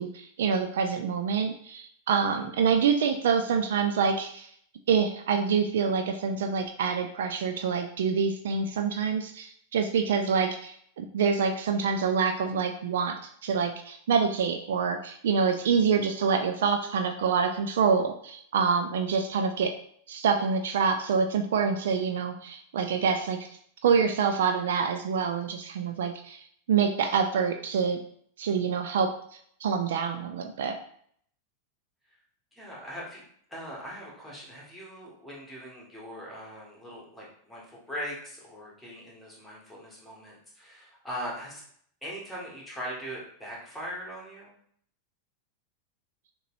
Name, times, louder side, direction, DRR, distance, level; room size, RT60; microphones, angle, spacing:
voice 1, 0.0-4.5 4.9-19.7 20.1-23.5 23.8-28.0 28.4-29.1 29.6-30.8, right 6 dB, 60° right, 6 dB, 0.4 m, -26 dB
voice 2, 32.5-33.2 33.5-41.6 42.0-44.5, equal, 5° left, -5 dB, 1.8 m, -40 dB
6.4 x 3.0 x 2.7 m, 0.63 s
figure-of-eight pair, 90°, 0 cm